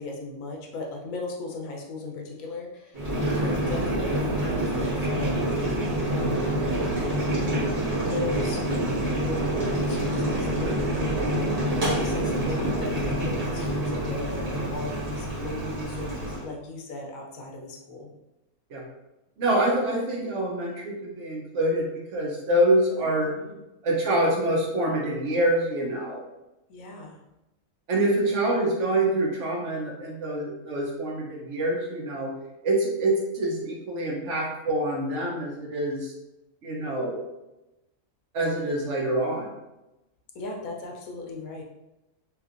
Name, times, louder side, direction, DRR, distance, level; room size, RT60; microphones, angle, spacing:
voice 1, 0.0-5.7 6.1-7.3 8.0-8.6 9.1-18.1 23.0-23.5 26.7-27.2 28.1-28.3 40.3-41.6, left 2 dB, 80° left, 0 dB, 1.1 m, -37 dB
Boiling, 2.9-16.4, right 1 dB, 30° right, 1.2 m, -27 dB
voice 2, 19.4-23.4 23.8-26.2 27.9-32.3 32.6-36.1 36.6-37.2 38.3-39.5, right 1 dB, 60° right, -2 dB, 1.0 m, -26 dB
3.2 x 3.1 x 2.5 m, 0.96 s
omnidirectional pair, 1.4 m